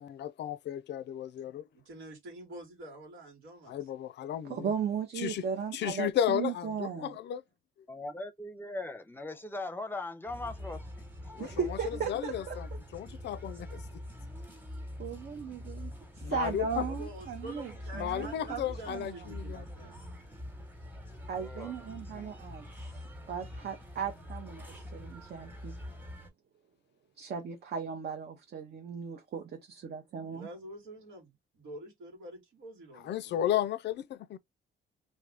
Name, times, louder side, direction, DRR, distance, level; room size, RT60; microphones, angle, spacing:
voice 1, 0.0-1.6 3.7-4.7 5.2-5.4 5.7-7.4 11.3-11.8 12.1-12.7 12.9-13.8 16.2-16.8 18.0-19.6 33.0-34.4, left 11 dB, 60° left, 0.4 m, -34 dB
voice 2, 1.9-3.8 16.8-20.0 30.3-33.5, right 1 dB, 90° right, 1.6 m, -47 dB
voice 3, 4.4-7.1 11.4-12.6 15.0-19.3 21.3-22.9 23.3-25.8 27.2-30.5, right 7 dB, 55° right, 0.7 m, -37 dB
voice 4, 7.9-10.9 11.2-11.6 21.4-21.7 22.1-22.4, left 2 dB, 10° left, 0.6 m, -40 dB
sound 1, 10.3-26.3, left 1 dB, 10° right, 1.1 m, -44 dB
2.6 x 2.4 x 3.4 m
cardioid pair, 90°, 20 cm